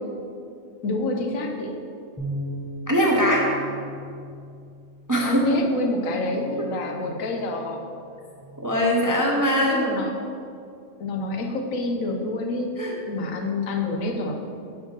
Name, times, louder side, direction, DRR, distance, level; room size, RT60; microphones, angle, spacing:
voice 1, 0.8-1.8 5.2-7.8 9.4-10.1 11.0-12.7 13.1-14.3, left 2 dB, 85° left, 2 dB, 1.2 m, -27 dB
sound 1, 2.2-8.4, equal, 10° left, 1.0 m, -39 dB
voice 2, 2.9-3.5 5.1-5.5 8.6-9.9 12.8-12.9, equal, 25° right, -2 dB, 0.5 m, -21 dB
6.4 x 4.8 x 5.3 m, 2.4 s
omnidirectional pair, 1.4 m